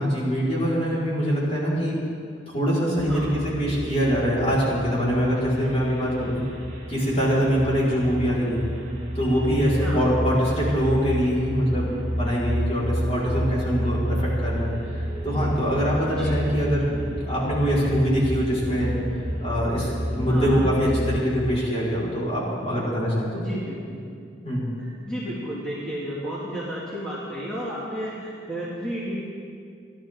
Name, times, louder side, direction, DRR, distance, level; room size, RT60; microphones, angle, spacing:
voice 1, 0.0-2.0 2.5-6.4 6.9-8.6 9.1-19.0 19.4-23.4 24.4-24.7, equal, 35° left, -7 dB, 4.7 m, -24 dB
sound 1, 3.0-21.2, equal, 40° right, 3.1 m, -30 dB
voice 2, 20.3-20.6 23.3-24.0 24.8-29.1, equal, 5° left, -9 dB, 2.4 m, -32 dB
28.5 x 11.5 x 3.8 m, 2.4 s
head